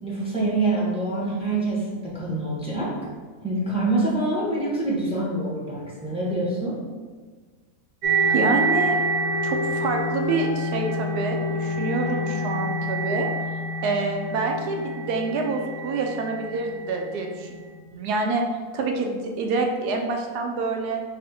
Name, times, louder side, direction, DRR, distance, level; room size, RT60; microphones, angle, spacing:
voice 1, 0.0-2.9 3.4-6.7, right 2 dB, 5° right, -7 dB, 1.1 m, -25 dB
sound 1, 8.0-17.5, right 1 dB, 65° right, 1.4 m, -27 dB
voice 2, 8.3-9.0 9.4-13.3 13.8-17.6 17.9-18.4 18.7-21.0, right 3 dB, 85° right, 3 dB, 1.2 m, -27 dB
4.1 x 3.1 x 4.2 m, 1.5 s
omnidirectional pair, 1.6 m